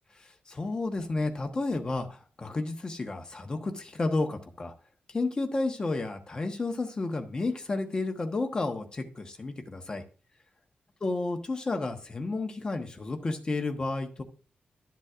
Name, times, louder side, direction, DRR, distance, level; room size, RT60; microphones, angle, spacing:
voice 1, 0.2-4.7 5.1-10.0 11.0-14.2, left 3 dB, 25° left, 4 dB, 1.2 m, -31 dB
12.0 x 7.3 x 2.5 m, 0.36 s
wide cardioid pair, 180°, 3 cm